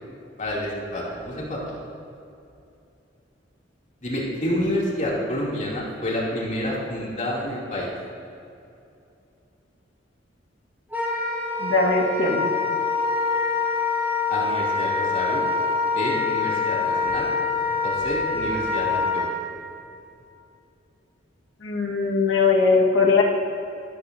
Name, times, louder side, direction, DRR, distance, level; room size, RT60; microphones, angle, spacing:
voice 1, 0.4-1.8 4.0-7.9 14.3-15.4 15.9-17.3 17.8-19.2, left 1 dB, 40° left, -5 dB, 2.5 m, -28 dB
Wind instrument woodwind instrument, 10.9-19.3, left 4 dB, 15° right, 2.2 m, -25 dB
voice 2, 11.6-12.5 21.6-23.2, left 4 dB, 75° left, -1 dB, 1.4 m, -20 dB
12.5 x 12.5 x 2.6 m, 2.7 s
head